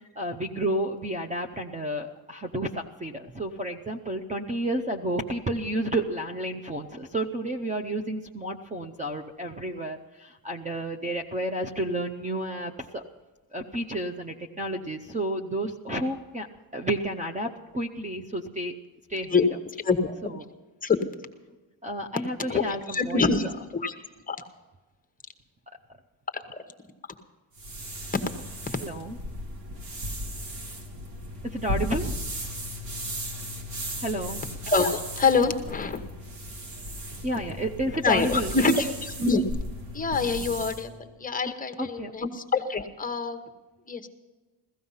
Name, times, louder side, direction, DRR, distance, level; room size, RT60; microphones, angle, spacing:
voice 1, 0.2-13.0 13.5-16.5 16.7-18.8 19.1-19.5 20.2-20.4 21.8-23.5 28.8-29.2 31.4-32.2 34.0-34.4 37.2-38.5 41.8-42.1, right 1 dB, 15° right, 6 dB, 0.6 m, -31 dB
voice 2, 19.8-20.3 20.8-21.0 22.5-23.5 23.7-23.9 24.3-24.4 26.3-26.6 34.7-36.0 38.0-39.6 39.9-40.9 41.2-43.4 43.9-44.1, left 4 dB, 20° left, 7 dB, 1.0 m, -25 dB
sound 1, 27.5-40.8, equal, 90° right, 2.8 m, -36 dB
16.0 x 14.5 x 5.5 m, 1.2 s
cardioid pair, 150°, 44 cm